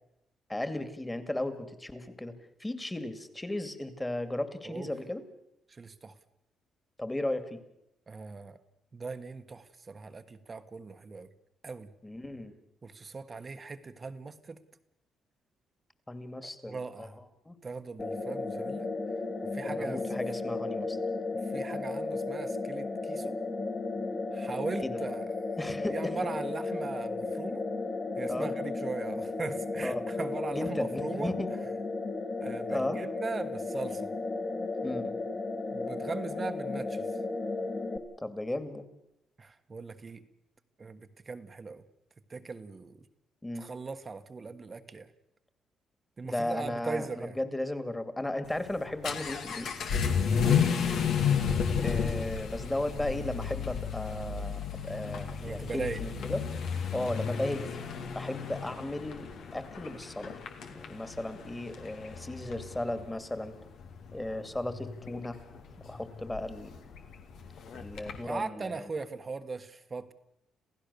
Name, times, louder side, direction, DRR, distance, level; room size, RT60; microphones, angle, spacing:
voice 1, 0.5-2.3 2.6-5.2 7.0-7.6 12.0-12.5 16.1-17.1 17.5-17.6 19.7-21.0 24.8-25.0 25.6-26.2 28.3-28.5 29.8-30.0 30.5-31.5 32.7-33.0 34.8-35.2 38.2-38.8 43.4-43.7 46.2-49.7 51.8-56.5 56.9-57.8 58.1-60.3 60.7-63.6 64.1-65.4 65.9-66.8 67.7-68.8, left 1 dB, 15° left, 11 dB, 2.4 m, -35 dB
voice 2, 5.7-6.1 8.1-8.6 8.9-11.3 11.6-11.9 12.8-14.6 16.6-17.2 17.6-18.9 19.5-20.0 21.5-23.3 24.3-25.3 25.9-27.6 28.2-31.3 32.4-34.1 35.7-37.0 39.4-40.2 40.8-41.8 42.3-43.0 43.5-45.1 46.2-47.4 50.4-50.7 55.4-56.0 68.2-70.1, right 4 dB, 35° right, 9 dB, 1.4 m, -39 dB
sound 1, 18.0-38.0, left 3 dB, 35° left, 2.4 m, -34 dB
Vehicle / Accelerating revving vroom, 48.5-68.3, left 7 dB, 75° left, 2.4 m, -33 dB
27.5 x 16.0 x 7.0 m, 0.83 s
cardioid pair, 90°, 0 cm